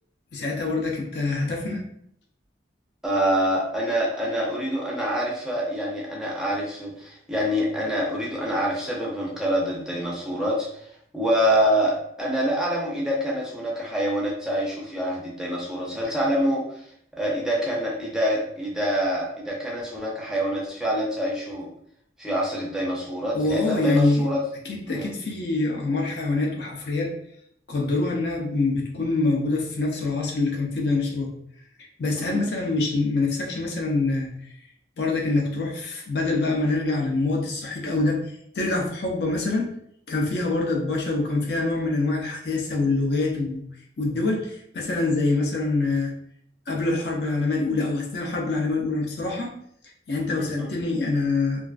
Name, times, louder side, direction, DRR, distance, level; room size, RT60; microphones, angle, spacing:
voice 1, 0.3-1.8 23.3-24.3 24.7-27.1 27.7-31.3 32.0-34.5 35.0-38.2 38.5-39.7 40.1-43.6 44.0-46.1 46.7-49.5 50.1-51.7, left 3 dB, 60° left, 0 dB, 0.5 m, -25 dB
voice 2, 3.0-10.9 11.1-16.8 17.1-21.7 22.2-24.4 24.9-25.1 32.2-32.5 50.4-50.7, equal, 5° right, -4 dB, 0.4 m, -26 dB
2.3 x 2.3 x 2.3 m, 0.68 s
head